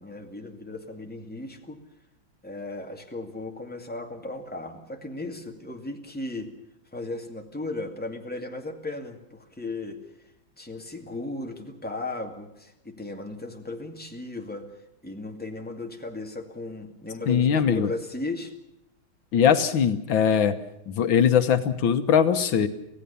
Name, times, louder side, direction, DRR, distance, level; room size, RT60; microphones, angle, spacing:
voice 1, 0.0-1.8 2.4-6.5 6.9-10.0 10.6-14.7 15.0-18.5, left 2 dB, 5° left, 3 dB, 2.3 m, -36 dB
voice 2, 17.3-17.9 19.3-20.6 20.9-22.7, left 8 dB, 80° left, 10 dB, 1.9 m, -21 dB
26.0 x 16.0 x 7.0 m, 0.83 s
omnidirectional pair, 2.1 m